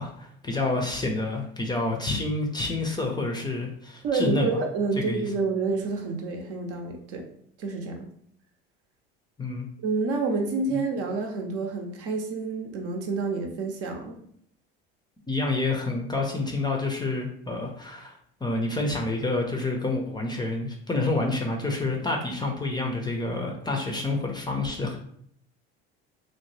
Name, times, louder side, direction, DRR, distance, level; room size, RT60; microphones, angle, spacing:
voice 1, 0.0-4.6 5.1-5.2 9.4-9.7 15.3-18.1 18.4-25.0, left 2 dB, 15° left, 1 dB, 0.5 m, -28 dB
voice 2, 4.0-7.2 7.6-8.1 9.8-14.2, right 4 dB, 50° right, 3 dB, 0.7 m, -28 dB
2.7 x 2.1 x 3.1 m, 0.65 s
hypercardioid pair, 85°, 29 cm